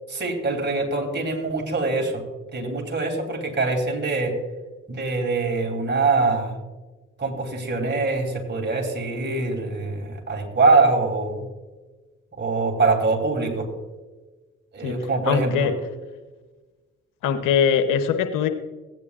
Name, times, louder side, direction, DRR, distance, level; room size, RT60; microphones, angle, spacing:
voice 1, 0.1-2.2 2.5-4.4 4.9-6.6 7.2-11.4 12.4-13.7 14.7-15.7, right 3 dB, 35° right, 2 dB, 2.8 m, -23 dB
voice 2, 15.2-15.7 17.2-18.5, left 7 dB, 75° left, 8 dB, 0.8 m, -21 dB
15.5 x 9.3 x 2.4 m, 1.2 s
hypercardioid pair, 50°, 32 cm